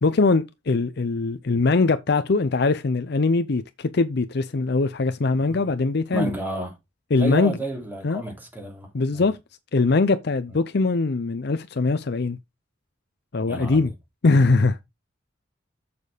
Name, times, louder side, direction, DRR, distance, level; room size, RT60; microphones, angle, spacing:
voice 1, 0.0-6.3 7.1-7.6 8.0-8.2 8.9-9.4 9.7-12.4 13.3-13.9 14.2-14.8, left 3 dB, 60° left, 0.6 m, -21 dB
voice 2, 6.1-6.8 7.2-9.2 13.5-13.8, right 1 dB, 10° right, 2.7 m, -31 dB
6.9 x 6.6 x 5.0 m
head